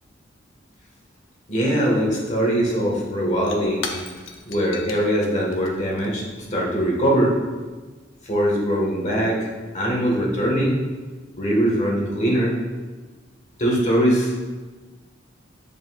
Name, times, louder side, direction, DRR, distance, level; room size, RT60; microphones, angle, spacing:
voice 1, 1.5-4.2 4.5-7.3 8.2-10.8 11.4-12.5 13.6-14.5, equal, 40° left, -3 dB, 1.5 m, -22 dB
Shatter / Crushing, 3.2-7.7, left 4 dB, 75° left, 0.7 m, -39 dB
7.7 x 5.3 x 2.4 m, 1.3 s
head